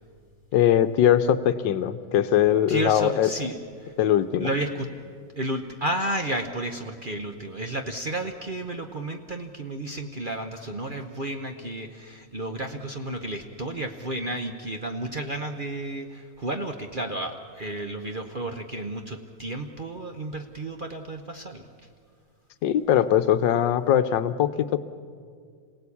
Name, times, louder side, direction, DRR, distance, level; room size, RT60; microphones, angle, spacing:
voice 1, 0.5-3.3 4.0-4.5 22.6-24.8, left 10 dB, 80° left, 11 dB, 1.5 m, -21 dB
voice 2, 2.7-3.9 4.4-4.9 5.4-21.7, right 1 dB, 40° right, 5 dB, 0.8 m, -32 dB
26.5 x 17.5 x 8.5 m, 2.2 s
omnidirectional pair, 2.0 m